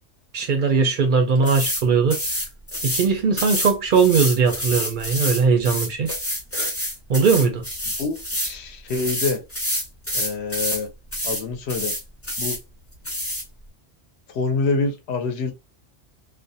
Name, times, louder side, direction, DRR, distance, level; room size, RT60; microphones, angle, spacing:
voice 1, 0.3-2.2 2.8-6.1 7.1-7.6, right 5 dB, 60° right, 0.6 m, -19 dB
sound 1, 1.5-1.8 2.1-3.1 3.4-8.6 8.9-10.8 11.1-11.4 11.7-12.6 13.1-13.4, equal, 15° left, 0.7 m, -27 dB
voice 2, 7.9-9.4 10.1-10.9 11.2-11.9 12.4-12.6 14.3-15.5, left 4 dB, 70° left, 0.9 m, -26 dB
2.4 x 2.1 x 2.6 m
omnidirectional pair, 1.2 m